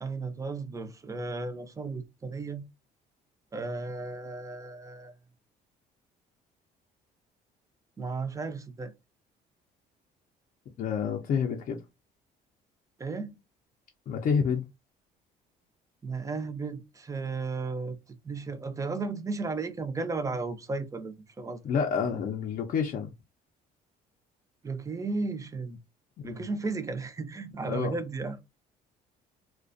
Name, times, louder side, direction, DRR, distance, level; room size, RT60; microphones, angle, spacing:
voice 1, 0.0-2.6 3.5-5.1 8.0-8.9 13.0-13.3 16.0-21.6 24.6-25.8 26.2-28.4, right 3 dB, 20° right, 0.4 m, -34 dB
voice 2, 10.8-11.8 14.1-14.7 21.6-23.1 26.2-26.4 27.7-28.0, left 6 dB, 50° left, 0.5 m, -29 dB
2.4 x 2.1 x 2.5 m
cardioid pair, 110°, 17 cm